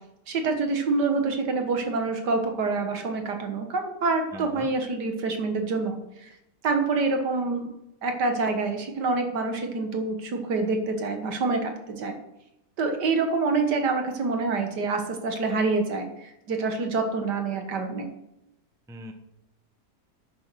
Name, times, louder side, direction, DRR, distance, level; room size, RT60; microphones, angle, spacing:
voice 1, 0.3-6.3 6.6-7.7 8.0-12.2 12.8-18.1, right 3 dB, 75° right, 5 dB, 2.0 m, -26 dB
voice 2, 4.3-4.7 18.9-19.1, right 1 dB, 5° right, 5 dB, 0.6 m, -40 dB
9.4 x 6.7 x 6.2 m, 0.87 s
omnidirectional pair, 1.8 m